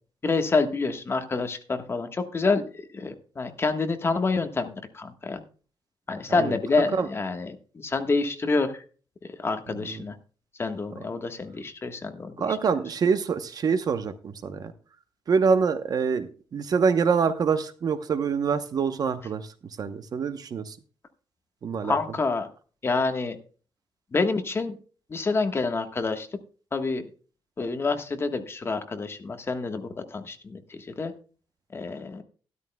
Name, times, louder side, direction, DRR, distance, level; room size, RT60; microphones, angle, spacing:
voice 1, 0.2-2.6 2.9-5.4 6.1-8.7 9.4-10.2 10.6-12.5 21.8-22.5 22.8-23.4 24.1-24.7 25.1-26.3 26.7-27.0 27.6-31.1 31.7-32.2, left 3 dB, 25° left, 7 dB, 1.3 m, -27 dB
voice 2, 12.4-14.7 15.3-19.5 19.8-20.8 21.6-22.0, right 5 dB, 45° right, 11 dB, 0.8 m, -25 dB
13.0 x 13.0 x 2.2 m, 0.38 s
wide cardioid pair, 150°, 9 cm